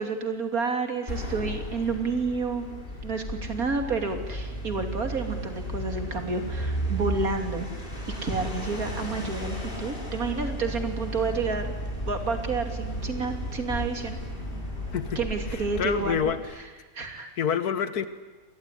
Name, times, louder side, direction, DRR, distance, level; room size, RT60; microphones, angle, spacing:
voice 1, 0.0-2.7 3.0-7.7 8.2-11.7 12.1-14.2 15.1-17.3, right 4 dB, 70° right, 6 dB, 3.2 m, -30 dB
sound 1, 1.1-16.6, equal, 35° left, 4.0 m, -34 dB
voice 2, 15.8-16.4 17.4-18.1, left 7 dB, 85° left, 13 dB, 1.8 m, -26 dB
26.0 x 20.0 x 9.9 m, 1.3 s
omnidirectional pair, 1.6 m